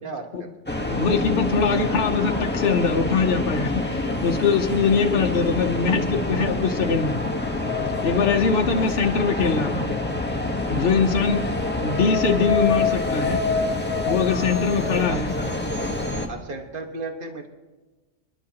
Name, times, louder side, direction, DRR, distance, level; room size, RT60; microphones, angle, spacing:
voice 1, 0.0-0.5 8.6-8.9 14.8-15.4 16.3-17.5, right 3 dB, 45° right, 3 dB, 1.6 m, -35 dB
sound 1, 0.7-16.3, left 2 dB, 10° left, 1.1 m, -26 dB
voice 2, 0.8-7.2 8.0-9.9 10.7-13.4 14.1-15.3, left 5 dB, 60° left, 3 dB, 1.0 m, -22 dB
30.0 x 11.5 x 2.9 m, 1.2 s
omnidirectional pair, 1.2 m